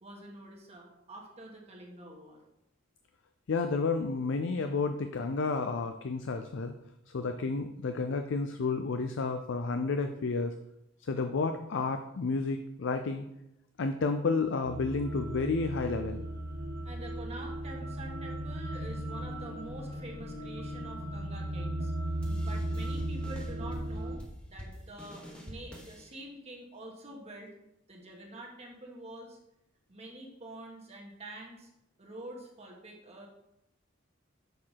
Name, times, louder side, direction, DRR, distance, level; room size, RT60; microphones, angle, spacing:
voice 1, 0.0-2.4 16.8-21.9 22.2-24.2 24.5-27.5 27.9-29.4 29.9-31.7 32.0-33.3, right 1 dB, 30° right, -1 dB, 1.4 m, -46 dB
voice 2, 3.5-6.7 7.1-10.5 11.0-13.3 13.8-16.2, left 4 dB, 65° left, 7 dB, 0.5 m, -31 dB
sound 1, 14.6-24.2, right 1 dB, 50° right, 0.8 m, -36 dB
sound 2, 22.2-26.1, equal, 5° left, 1.2 m, -46 dB
6.6 x 4.8 x 5.7 m, 0.83 s
head